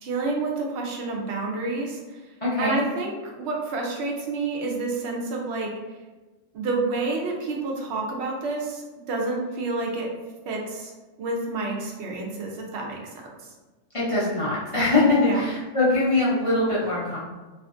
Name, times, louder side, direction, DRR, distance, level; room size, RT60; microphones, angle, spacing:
voice 1, 0.0-2.0 2.6-5.7 6.5-10.1 10.5-10.9 11.2-13.1 15.1-15.4, right 3 dB, 65° right, -1 dB, 0.7 m, -29 dB
voice 2, 2.4-2.8 13.9-17.2, left 2 dB, 45° left, -9 dB, 0.4 m, -22 dB
2.5 x 2.4 x 2.4 m, 1.2 s
omnidirectional pair, 1.4 m